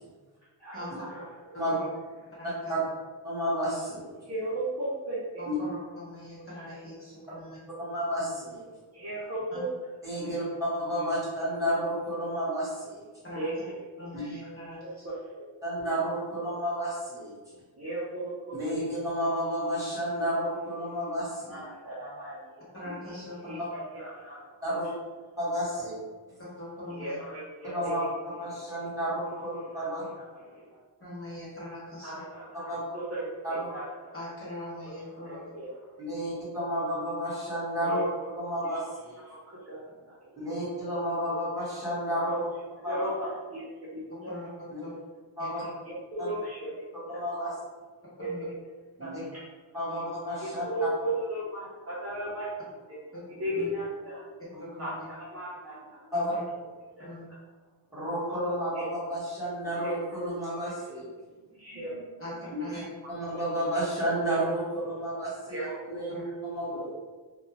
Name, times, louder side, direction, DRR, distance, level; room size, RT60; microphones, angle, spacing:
voice 1, 0.6-1.2 4.3-5.4 8.9-9.7 10.5-10.6 13.3-13.5 14.8-14.9 17.8-18.6 21.5-22.6 23.4-24.6 27.0-28.1 28.5-28.8 29.3-30.6 32.0-34.1 34.8-34.9 35.2-35.7 37.8-38.0 39.3-40.5 42.2-42.4 42.9-43.6 43.9-44.3 45.8-47.5 48.2-48.3 49.0-49.3 50.4-52.5 52.9-53.0 53.4-54.2 54.8-54.9 55.3-56.1 57.0-57.1 58.8-58.9 59.8-59.9 60.8-60.9 61.6-62.3 65.5-66.0, right 1 dB, 30° right, -9 dB, 0.6 m, -36 dB
voice 2, 1.5-1.9 2.4-2.7 5.4-7.6 10.2-10.3 13.2-13.5 14.0-15.0 22.7-23.7 26.6-27.2 31.0-32.2 34.1-35.4 44.3-44.5 44.8-44.9 45.4-45.7 48.2-48.4 49.2-49.3 49.9-50.0 53.5-53.7 54.6-55.0 56.1-56.4 57.0-57.2 62.2-62.8 66.1-66.2, left 1 dB, 25° left, -9 dB, 0.9 m, -41 dB
voice 3, 3.2-4.3 5.5-5.6 7.8-8.6 10.0-13.0 14.1-14.2 15.6-17.3 18.6-21.6 24.6-24.9 25.4-25.9 27.7-28.0 28.4-30.0 32.7-32.8 33.4-33.7 36.0-38.1 38.3-39.2 40.3-42.4 42.8-43.1 44.7-44.8 45.4-45.6 46.2-46.3 47.1-47.5 49.0-49.2 49.7-50.6 56.1-56.3 57.9-61.1 62.5-62.8 63.1-66.2 66.4-66.9, equal, 5° right, -10 dB, 1.3 m, -31 dB
2.4 x 2.2 x 3.1 m, 1.4 s
wide cardioid pair, 125°, 49 cm